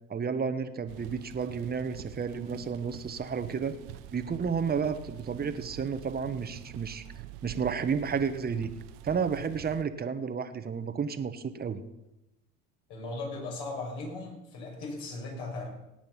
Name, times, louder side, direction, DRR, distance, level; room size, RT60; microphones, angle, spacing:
voice 1, 0.1-3.7 4.1-7.0 7.4-8.7 9.0-11.8, right 6 dB, 20° right, 9 dB, 1.1 m, -31 dB
sound 1, 0.9-9.8, right 13 dB, 65° right, 0.9 m, -46 dB
voice 2, 12.9-15.7, left 2 dB, 65° left, 0 dB, 6.3 m, -37 dB
17.5 x 8.7 x 5.8 m, 0.93 s
hypercardioid pair, 80°, 45 cm